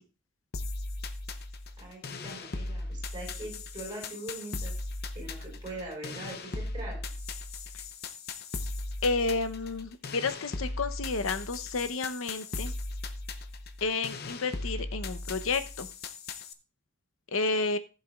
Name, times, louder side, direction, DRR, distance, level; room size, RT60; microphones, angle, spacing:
sound 1, 0.5-16.5, left 2 dB, 50° left, 0.8 m, -38 dB
voice 1, 1.8-4.7 5.1-7.0, right 2 dB, 20° right, -2 dB, 5.4 m, -41 dB
voice 2, 9.0-12.7 13.8-15.9 17.3-17.8, left 3 dB, 75° left, 11 dB, 0.8 m, -31 dB
15.5 x 7.4 x 2.4 m, 0.33 s
head